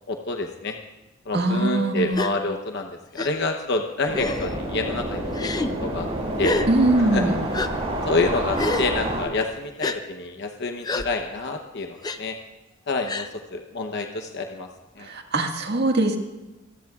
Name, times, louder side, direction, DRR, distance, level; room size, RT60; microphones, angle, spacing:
voice 1, 0.1-0.7 1.3-5.2 5.8-6.1 6.4-6.6 7.1-7.2 8.0-12.3 12.9-14.7 15.0-15.1, left 3 dB, 55° left, 4 dB, 0.9 m, -27 dB
voice 2, 1.3-2.2 6.7-7.4 15.0-16.2, right 2 dB, 55° right, 3 dB, 1.7 m, -21 dB
Gasp, 2.1-2.3 3.2-3.3 4.1-4.5 5.3-5.7 6.4-6.7 7.5-7.7 8.5-8.9 9.8-10.0 10.8-11.1 12.0-12.2 13.1-13.3, left 2 dB, 20° left, 0.6 m, -27 dB
sound 1, 4.1-9.2, right 1 dB, 30° right, 5.5 m, -28 dB
24.5 x 18.5 x 2.4 m, 1.1 s
head